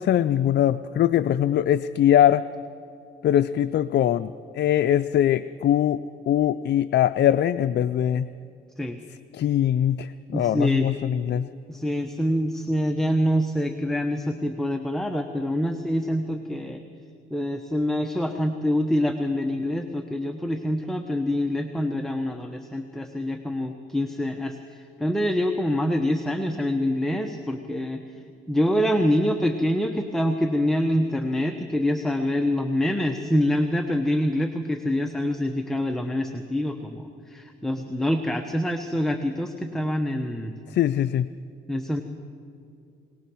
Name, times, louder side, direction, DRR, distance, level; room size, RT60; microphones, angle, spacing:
voice 1, 0.0-2.4 3.2-8.3 9.3-11.5 40.7-41.3, left 11 dB, 60° left, 11 dB, 0.5 m, -22 dB
voice 2, 10.3-10.9 11.7-16.8 17.3-28.0 28.5-40.5 41.7-42.0, left 1 dB, ahead, 4 dB, 1.1 m, -25 dB
21.0 x 19.5 x 6.2 m, 2.5 s
cardioid pair, 90°, 20 cm